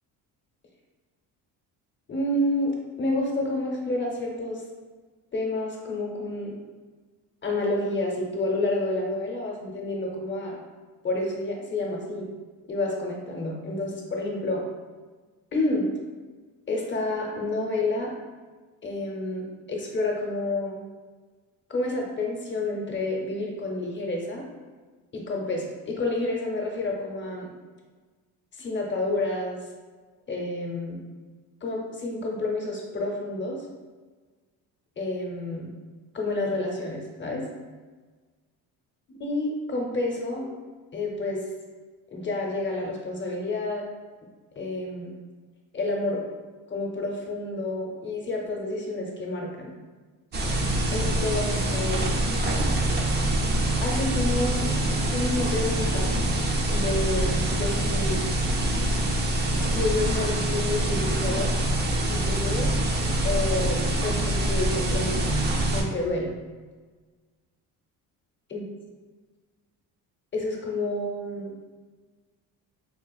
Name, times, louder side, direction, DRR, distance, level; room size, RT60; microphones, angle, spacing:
voice 1, 2.1-4.6 5.3-6.5 7.4-10.6 11.0-12.3 12.7-14.6 15.5-15.9 16.7-18.1 18.8-20.8 21.7-24.4 25.1-27.5 28.5-29.6 30.3-31.0 31.6-33.6 35.0-35.7 36.1-37.4 39.1-40.5 40.9-41.4 42.1-43.9 44.6-45.1 45.7-46.2 46.7-49.7 50.9-52.1 53.8-54.7 55.1-56.2 56.7-58.2 59.6-61.5 62.1-62.7 63.2-65.4 65.7-66.3 68.5-68.6 70.3-71.5, left 2 dB, 30° left, -1 dB, 0.7 m, -29 dB
sound 1, 50.3-65.8, right 1 dB, 30° right, 0.4 m, -25 dB
4.5 x 2.4 x 2.3 m, 1.4 s
cardioid pair, 115°, 37 cm